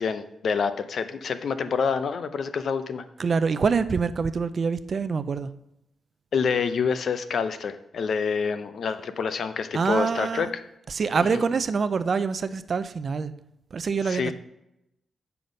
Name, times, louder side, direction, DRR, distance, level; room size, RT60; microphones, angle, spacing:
voice 1, 0.0-3.0 6.3-10.5 11.3-11.4 14.1-14.3, left 6 dB, 60° left, 10 dB, 0.6 m, -27 dB
voice 2, 3.2-5.5 9.7-10.5 10.9-13.3 13.7-14.3, right 5 dB, 45° right, 13 dB, 0.4 m, -25 dB
7.9 x 5.7 x 5.1 m, 0.85 s
wide cardioid pair, 145°, 0 cm